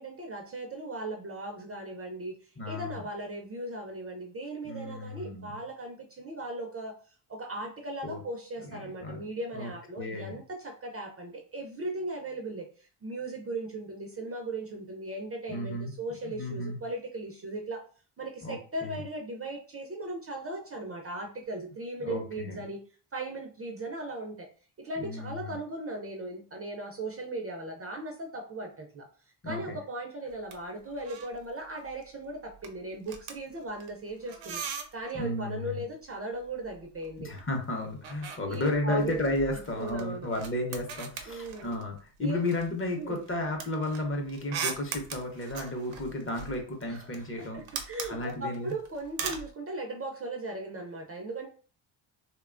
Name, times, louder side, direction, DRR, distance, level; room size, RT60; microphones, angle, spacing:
voice 1, 0.0-6.9 7.3-17.8 18.2-22.8 23.1-24.5 24.8-29.1 29.4-37.3 38.5-39.2 39.7-40.3 41.3-41.8 42.2-42.4 43.0-43.2 46.9-51.5, right 2 dB, 30° right, 2 dB, 0.4 m, -38 dB
voice 2, 2.6-3.0 4.6-5.6 8.0-8.2 8.6-9.2 9.5-10.4 15.5-15.9 16.2-16.8 18.4-19.0 22.0-22.6 25.0-25.6 29.4-29.8 35.1-35.8 37.2-47.6 48.1-48.7, left 1 dB, 25° left, 2 dB, 0.7 m, -33 dB
sound 1, 30.3-30.6 30.8-31.4 31.7-32.0 32.3-35.2 36.4-37.5 37.7-42.0 42.5-49.5, right 6 dB, 70° right, 0.7 m, -40 dB
2.8 x 2.2 x 2.4 m, 0.40 s
cardioid pair, 90°, 47 cm